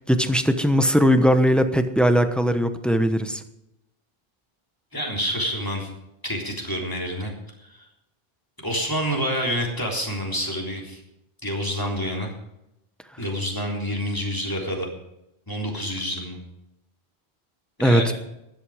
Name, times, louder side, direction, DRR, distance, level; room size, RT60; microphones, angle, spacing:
voice 1, 0.1-3.4 17.8-18.1, equal, ahead, 8 dB, 1.0 m, -19 dB
voice 2, 4.9-5.9 6.2-7.3 7.6-7.8 8.6-11.0 11.4-12.3 13.2-14.9 15.5-16.4 17.8-18.1, equal, 20° left, -1 dB, 3.7 m, -28 dB
15.5 x 11.5 x 5.0 m, 0.86 s
omnidirectional pair, 1.1 m